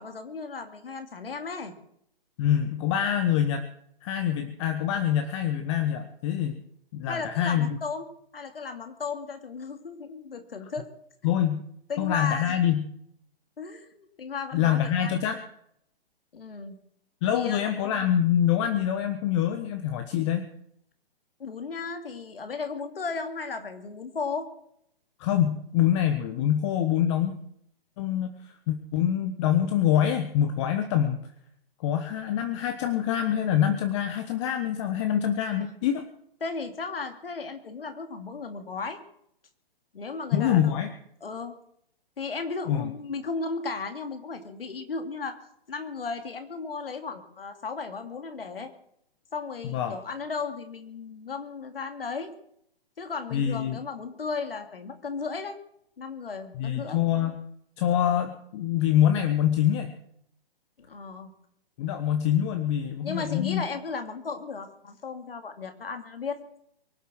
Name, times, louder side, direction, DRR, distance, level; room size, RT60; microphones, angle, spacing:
voice 1, 0.0-1.7 7.1-8.1 8.3-10.9 11.2-11.3 11.9-12.6 13.6-15.1 16.3-16.8 17.3-17.7 21.4-24.5 36.4-39.0 39.9-40.7 41.2-41.5 42.2-45.4 45.7-48.7 49.3-52.3 53.0-55.6 56.0-57.0 60.8-61.3 63.0-66.4, left 4 dB, 70° left, 7 dB, 2.7 m, -35 dB
voice 2, 2.4-3.6 4.0-6.6 6.9-7.8 11.2-11.6 12.0-12.8 14.5-15.4 17.2-20.5 25.2-27.3 28.0-28.3 28.7-31.2 31.8-36.0 40.3-40.9 42.7-42.9 49.7-50.0 53.3-53.8 56.5-57.4 57.8-59.9 61.8-63.6, left 10 dB, 30° left, 8 dB, 1.2 m, -25 dB
23.5 x 8.1 x 6.2 m, 0.71 s
figure-of-eight pair, 130°, 30 cm